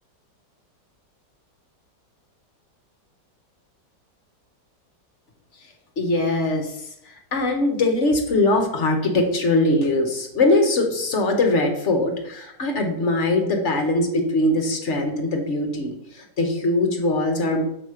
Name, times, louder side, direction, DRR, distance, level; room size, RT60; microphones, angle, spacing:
voice 1, 6.0-6.8 7.0-17.6, left 2 dB, 50° left, 3 dB, 1.1 m, -21 dB
6.1 x 5.0 x 4.9 m, 0.76 s
omnidirectional pair, 1.9 m